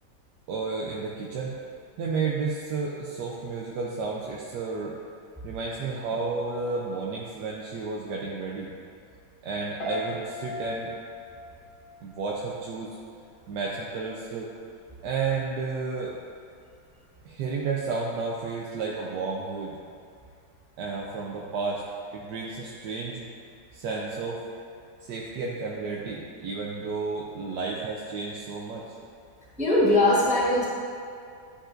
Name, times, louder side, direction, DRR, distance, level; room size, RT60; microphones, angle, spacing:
voice 1, 0.5-1.5 2.0-5.0 5.4-8.7 9.4-10.9 12.0-13.0 13.5-14.5 15.0-16.2 17.2-19.8 20.8-21.8 22.1-23.3 23.7-24.4 25.0-29.0, right 4 dB, 75° right, -3 dB, 1.2 m, -32 dB
Piano, 9.8-12.9 13.2-13.6, left 2 dB, 60° left, 2.4 m, -38 dB
voice 2, 29.6-30.7, left 1 dB, 5° right, -7 dB, 1.0 m, -21 dB
11.5 x 5.2 x 2.5 m, 2.4 s
omnidirectional pair, 1.9 m